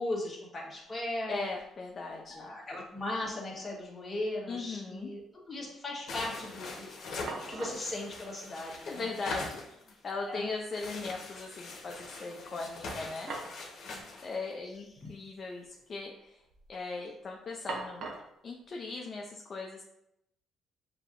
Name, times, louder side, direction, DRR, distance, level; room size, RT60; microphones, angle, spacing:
voice 1, 0.0-1.4 2.3-7.0 7.5-9.1 10.3-10.5 12.3-12.6 13.8-14.0, left 1 dB, 20° left, -4 dB, 1.4 m, -38 dB
sound 1, 0.8-0.9 1.1-1.7 2.1-3.0 3.2-3.3 6.8-6.9 7.3-7.9 9.0-9.1 9.5-9.6 12.9-13.6 13.9-14.0 14.9-15.2 15.5-16.0 16.4-16.8 17.7-18.4, right 3 dB, 60° right, 0.7 m, -43 dB
voice 2, 1.3-2.5 4.5-5.1 8.9-9.8 10.0-13.3 14.2-16.4 16.7-18.1 18.4-19.8, left 3 dB, 35° left, 0 dB, 0.4 m, -39 dB
sound 2, 6.1-10.1 10.7-14.3, left 3 dB, 55° left, 1.0 m, -42 dB
6.7 x 2.7 x 2.5 m, 0.81 s
cardioid pair, 145°, 0 cm